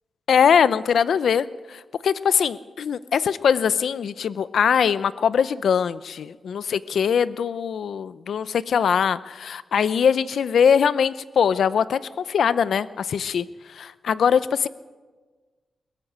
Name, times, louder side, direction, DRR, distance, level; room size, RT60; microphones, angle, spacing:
voice 1, 0.3-12.0 12.3-14.7, left 7 dB, 65° left, 16 dB, 0.7 m, -22 dB
21.5 x 19.0 x 8.1 m, 1.4 s
wide cardioid pair, 165°, 0 cm